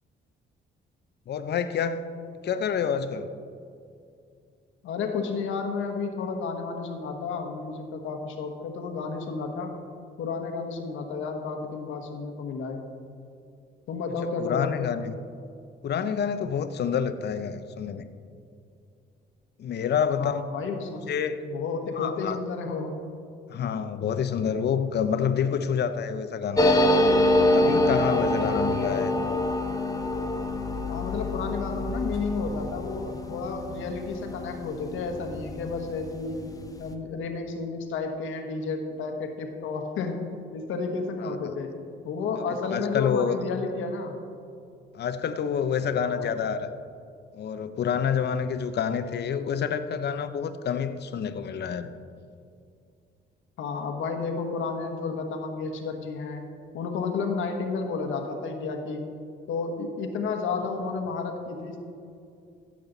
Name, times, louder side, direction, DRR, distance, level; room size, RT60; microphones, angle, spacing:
voice 1, 1.3-2.0 2.4-3.3 14.4-15.1 15.8-18.1 19.6-20.4 21.1-21.4 22.0-22.4 23.5-26.7 27.5-29.1 41.2-41.5 42.7-43.4 44.9-46.7 47.3-51.9, left 7 dB, 55° left, 11 dB, 0.7 m, -28 dB
voice 2, 4.8-9.7 10.2-12.8 13.9-14.8 20.2-21.0 21.4-23.0 30.9-36.4 36.8-41.7 42.0-44.1 46.0-46.3 53.6-56.5 56.7-59.1 59.5-61.8, left 4 dB, 80° left, 4 dB, 1.3 m, -31 dB
sound 1, 26.6-35.7 36.0-36.1 36.3-36.9, left 1 dB, 15° left, 0.8 m, -25 dB
14.5 x 7.6 x 4.0 m, 2.4 s
cardioid pair, 90°, 20 cm